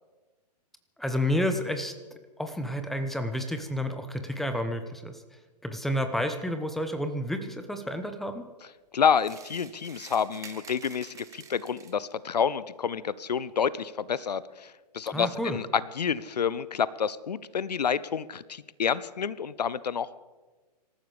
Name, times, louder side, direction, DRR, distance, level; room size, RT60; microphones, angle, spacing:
voice 1, 1.0-1.9 2.4-5.2 5.6-8.4 15.1-15.6, equal, ahead, 8 dB, 1.1 m, -30 dB
voice 2, 8.9-20.2, left 7 dB, 75° left, 19 dB, 0.7 m, -29 dB
sound 1, 9.2-12.1, right 7 dB, 15° right, 1.3 m, -48 dB
26.5 x 14.0 x 3.5 m, 1.2 s
figure-of-eight pair, 120°, 21 cm